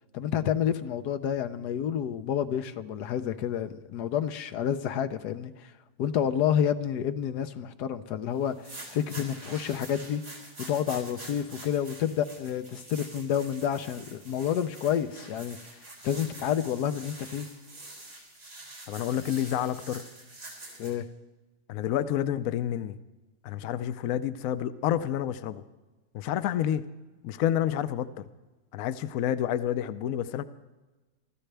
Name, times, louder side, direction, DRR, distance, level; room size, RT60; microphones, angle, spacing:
voice 1, 0.1-5.5 6.0-10.2 10.6-15.6 16.0-17.5 20.8-21.1, left 9 dB, 85° left, 9 dB, 1.3 m, -29 dB
sound 1, 8.4-20.9, right 2 dB, 80° right, 5.0 m, -46 dB
voice 2, 18.9-20.0 21.7-23.0 23.4-25.6 26.1-26.8 27.2-28.1 28.7-30.4, left 11 dB, 70° left, 12 dB, 1.0 m, -29 dB
24.0 x 14.0 x 3.4 m, 1.2 s
omnidirectional pair, 1.7 m